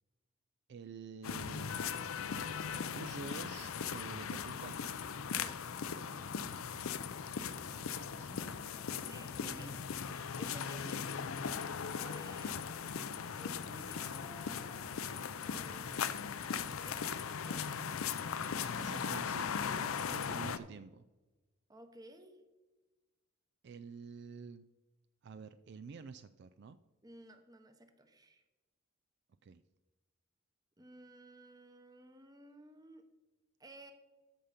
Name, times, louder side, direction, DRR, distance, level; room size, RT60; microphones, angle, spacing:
voice 1, 0.7-2.2 2.7-4.8 6.7-7.1 7.6-8.5 18.8-19.6 20.1-21.0 23.6-24.6 25.2-26.8 29.4-29.6, right 5 dB, 55° right, 12 dB, 0.3 m, -49 dB
sound 1, 1.2-20.6, left 7 dB, 75° left, 0.5 m, -39 dB
voice 2, 5.3-5.7 6.1-6.2 9.0-9.8 10.1-11.2 11.9-15.1 15.4-16.5 16.8-17.7 21.7-22.4 27.0-28.4 30.8-33.0 33.6-33.9, right 1 dB, 20° right, 8 dB, 1.0 m, -55 dB
13.5 x 5.6 x 5.1 m, 1.2 s
head